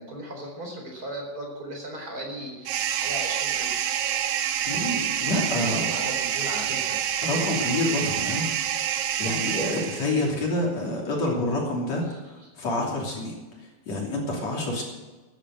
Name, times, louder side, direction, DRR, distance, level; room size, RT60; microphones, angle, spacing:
voice 1, 0.0-3.8 5.3-6.9 9.7-10.2 12.1-12.2, right 1 dB, 25° right, 0 dB, 4.7 m, -37 dB
sound 1, 2.7-10.4, right 10 dB, 80° right, 2.7 m, -27 dB
voice 2, 4.7-5.9 7.2-8.5 9.2-13.4 13.9-14.8, left 2 dB, 50° left, -1 dB, 3.9 m, -27 dB
14.5 x 10.5 x 7.7 m, 1.2 s
omnidirectional pair, 4.1 m